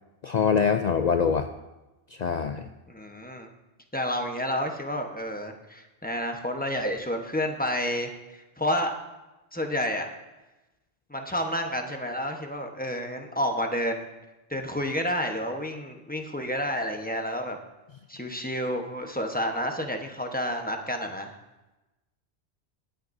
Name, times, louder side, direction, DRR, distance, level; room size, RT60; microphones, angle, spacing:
voice 1, 0.2-1.5 2.2-2.7, left 6 dB, 50° left, 7 dB, 0.5 m, -24 dB
voice 2, 2.9-3.5 3.9-9.0 9.5-10.1 11.1-14.1 14.5-17.6 18.1-21.3, equal, 10° left, 3 dB, 1.0 m, -30 dB
22.5 x 9.0 x 2.7 m, 1.0 s
omnidirectional pair, 1.1 m